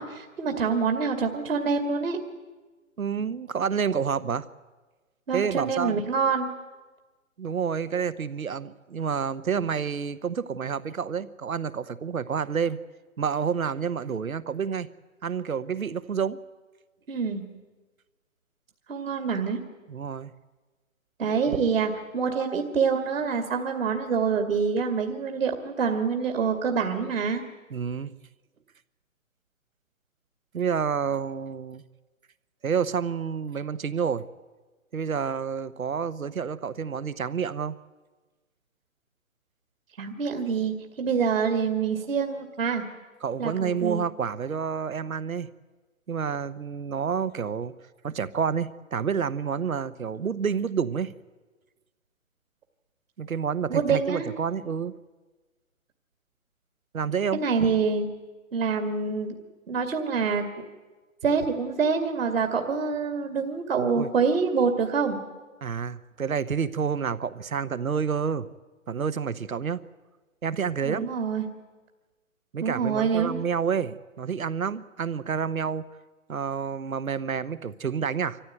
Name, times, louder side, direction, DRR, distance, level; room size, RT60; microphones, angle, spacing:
voice 1, 0.0-2.2 5.3-6.5 17.1-17.4 18.9-19.6 21.2-27.4 40.0-42.8 43.4-44.0 53.7-54.3 57.3-58.1 58.5-59.4 59.7-60.5 61.2-65.2 70.8-71.5 72.6-73.4, right 5 dB, 70° right, 5 dB, 2.5 m, -26 dB
voice 2, 3.0-4.5 5.3-6.0 7.4-12.8 13.2-14.9 15.2-16.4 19.9-20.3 27.7-28.1 30.5-31.8 32.6-34.3 34.9-37.7 43.2-45.5 46.1-47.7 48.0-51.1 53.2-54.9 56.9-57.4 64.0-64.1 65.6-68.5 68.9-69.8 70.4-71.1 72.5-75.8 76.3-78.4, right 6 dB, 90° right, 15 dB, 1.0 m, -29 dB
24.5 x 15.0 x 9.1 m, 1.3 s
figure-of-eight pair, 135°, 41 cm